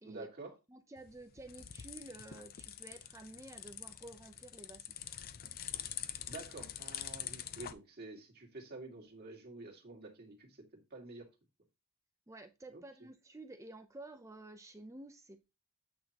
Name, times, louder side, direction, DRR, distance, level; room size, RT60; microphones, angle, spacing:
voice 1, 0.0-0.6 6.3-11.3 12.7-12.8, right 3 dB, 45° right, 2.0 m, -49 dB
voice 2, 0.7-5.0 12.3-15.4, right 2 dB, 15° right, 0.6 m, -51 dB
sound 1, 1.0-7.7, left 10 dB, 45° left, 0.5 m, -45 dB
8.7 x 5.6 x 2.9 m
head